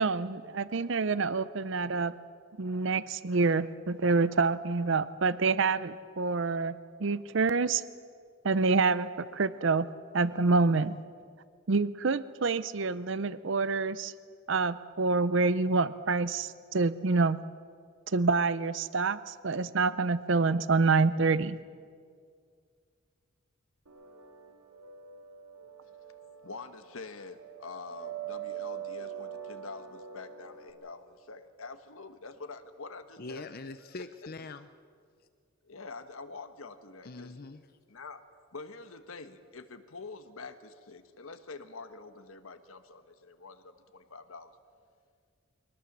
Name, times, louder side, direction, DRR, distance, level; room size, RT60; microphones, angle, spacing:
voice 1, 0.0-2.2 2.6-7.8 8.4-11.0 11.7-14.1 14.5-17.4 18.1-21.6, right 4 dB, 60° right, 16 dB, 0.6 m, -27 dB
sound 1, 23.9-30.7, right 9 dB, 90° right, 2.8 m, -43 dB
voice 2, 26.4-33.5 35.6-37.4 37.9-38.2 38.5-44.5, left 4 dB, 75° left, 9 dB, 1.3 m, -46 dB
voice 3, 33.2-34.7 37.0-37.6, left 3 dB, 45° left, 10 dB, 0.6 m, -43 dB
24.0 x 19.0 x 7.3 m, 2.1 s
head